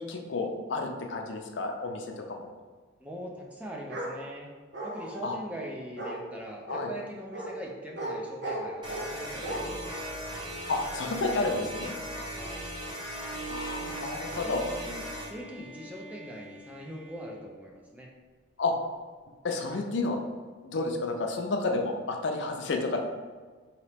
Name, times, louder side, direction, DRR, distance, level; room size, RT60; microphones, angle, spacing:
voice 1, 0.0-2.5 5.2-5.4 6.7-6.9 10.7-11.9 13.5-14.6 18.6-18.7 19.4-20.2 20.6-23.0, left 3 dB, 65° left, 3 dB, 0.5 m, -31 dB
voice 2, 3.0-4.5 4.8-10.3 12.4-12.7 14.5-18.1, equal, 5° right, -1 dB, 0.4 m, -42 dB
Bark, 3.9-4.1 4.7-5.3 6.0-6.2 6.7-6.8 7.3-7.5 8.0-8.1 8.4-9.1 9.4-9.6, right 1 dB, 60° right, 0.9 m, -35 dB
sound 1, 8.8-15.3, equal, 25° right, 0.9 m, -38 dB
Bowed string instrument, 12.9-18.0, right 4 dB, 35° left, 0.8 m, -45 dB
4.1 x 2.8 x 3.3 m, 1.4 s
head